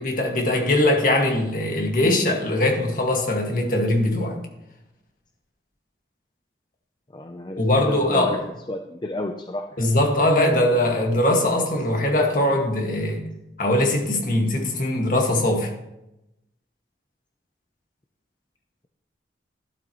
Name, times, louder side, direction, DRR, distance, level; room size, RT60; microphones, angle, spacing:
voice 1, 0.0-4.4 7.6-8.4 9.8-13.2 13.6-15.7, left 1 dB, 45° left, 2.0 m, -21 dB
voice 2, 7.1-7.6 7.9-8.4 8.7-10.0, left 1 dB, 25° left, 0.6 m, -32 dB
12.5 x 12.0 x 3.1 m
head